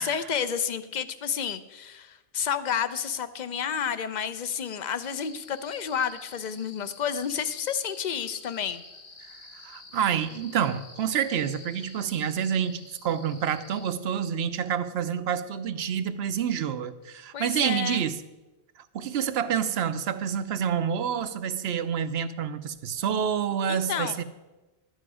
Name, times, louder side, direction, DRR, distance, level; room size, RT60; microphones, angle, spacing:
voice 1, 0.0-8.8 17.3-18.1 23.7-24.2, left 7 dB, 50° left, 13 dB, 0.6 m, -30 dB
sound 1, 4.9-13.9, left 3 dB, 70° left, 1.4 m, -49 dB
voice 2, 9.5-18.2 18.9-24.2, right 8 dB, 75° right, 13 dB, 0.9 m, -28 dB
12.0 x 9.2 x 4.9 m, 1.1 s
omnidirectional pair, 1.1 m